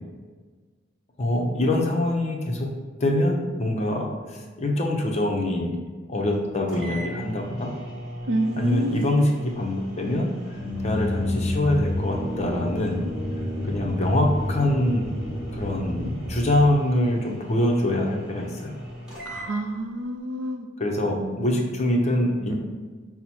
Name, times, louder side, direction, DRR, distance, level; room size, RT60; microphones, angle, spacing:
voice 1, 1.2-2.7 3.0-5.8 6.1-7.7 8.6-10.3 10.8-13.1 13.7-15.1 15.5-18.7 20.8-22.5, left 1 dB, 35° left, 1 dB, 0.6 m, -24 dB
sound 1, 6.3-6.4 6.7-19.5, equal, 5° right, 1.1 m, -39 dB
voice 2, 8.3-9.3 19.3-20.7 21.2-21.7, right 1 dB, 80° right, 4 dB, 0.5 m, -28 dB
sound 2, 10.6-16.6, left 1 dB, 30° right, 0.8 m, -29 dB
5.5 x 2.0 x 4.3 m, 1.4 s
head